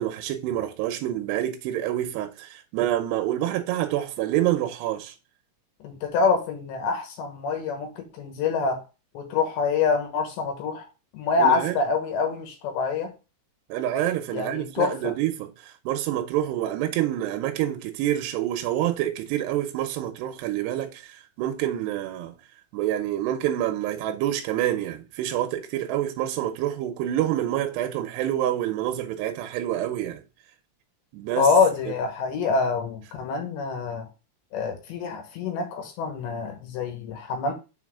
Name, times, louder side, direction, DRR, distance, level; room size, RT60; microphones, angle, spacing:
voice 1, 0.0-5.1 11.4-11.7 13.7-22.3 22.7-30.2 31.1-31.5, right 12 dB, 80° right, 2.6 m, -27 dB
voice 2, 5.8-8.8 9.1-10.9 11.1-13.1 14.3-15.1 31.4-34.1 34.5-37.5, left 4 dB, 75° left, 3.3 m, -25 dB
6.5 x 4.2 x 3.6 m
omnidirectional pair, 5.4 m